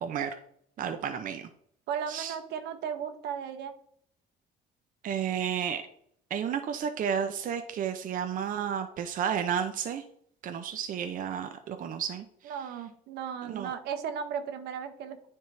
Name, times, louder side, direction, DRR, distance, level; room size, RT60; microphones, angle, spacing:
voice 1, 0.0-0.3 0.8-1.5 2.1-2.3 5.0-5.9 6.3-10.0 10.4-12.2 13.5-13.7, right 8 dB, 55° right, 7 dB, 0.7 m, -32 dB
voice 2, 1.9-3.7 12.4-15.3, right 7 dB, 80° right, 8 dB, 1.0 m, -36 dB
9.5 x 3.6 x 4.5 m, 0.67 s
cardioid pair, 110°, 17 cm